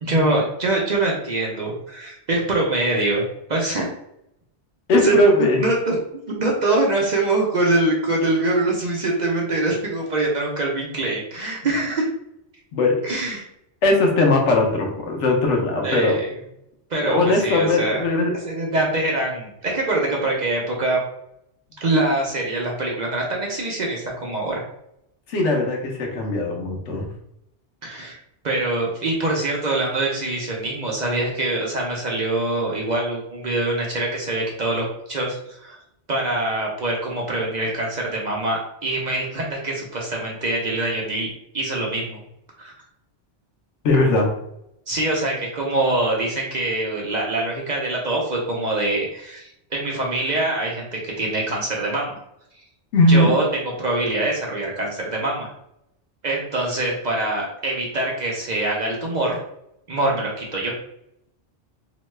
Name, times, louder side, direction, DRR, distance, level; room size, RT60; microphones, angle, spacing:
voice 1, 0.0-3.2 3.5-3.9 4.9-5.2 5.6-5.9 6.4-12.1 13.0-13.4 15.8-16.3 16.9-18.0 18.4-21.0 21.8-24.6 27.8-28.2 28.4-35.8 36.1-41.3 41.5-42.2 42.6-42.7 44.9-52.2 53.1-53.4 53.8-55.5 56.2-59.4 59.9-60.7, right 2 dB, 50° right, -2 dB, 0.6 m, -24 dB
voice 2, 4.9-5.6 12.7-12.9 13.8-16.2 17.0-18.3 25.3-27.1 43.8-44.3 52.9-53.3, left 2 dB, 90° left, 1 dB, 1.1 m, -19 dB
2.8 x 2.2 x 3.1 m, 0.80 s
omnidirectional pair, 1.2 m